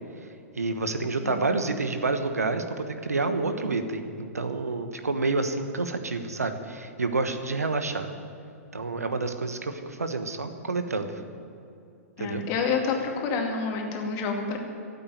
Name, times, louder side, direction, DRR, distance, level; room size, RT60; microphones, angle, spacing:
voice 1, 0.6-8.1 8.7-11.2 12.2-12.4, right 3 dB, 90° right, 8 dB, 1.2 m, -28 dB
voice 2, 12.2-14.6, left 5 dB, 40° left, 2 dB, 2.4 m, -28 dB
13.0 x 8.3 x 9.5 m, 2.6 s
hypercardioid pair, 115°, 8 cm